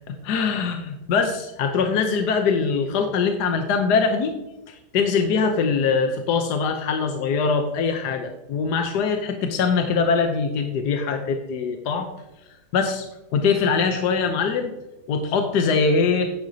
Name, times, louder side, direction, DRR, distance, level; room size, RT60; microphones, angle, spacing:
voice 1, 0.1-4.3 4.7-12.1 12.7-13.1 13.3-14.7 15.1-16.3, left 5 dB, 75° left, 5 dB, 1.4 m, -22 dB
10.0 x 9.2 x 2.8 m, 0.95 s
omnidirectional pair, 1.8 m